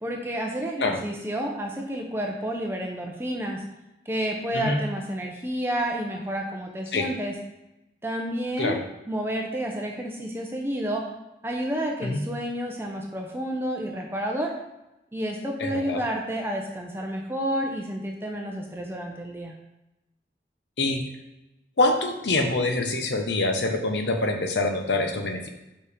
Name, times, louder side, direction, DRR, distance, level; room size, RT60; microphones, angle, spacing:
voice 1, 0.0-3.6 4.1-7.3 8.0-8.8 9.1-11.1 11.4-14.5 15.1-19.5, right 1 dB, 15° right, 1 dB, 0.6 m, -30 dB
voice 2, 15.6-16.0 20.8-21.0 21.8-25.5, left 2 dB, 75° left, 4 dB, 0.9 m, -25 dB
5.1 x 4.9 x 5.0 m, 0.93 s
head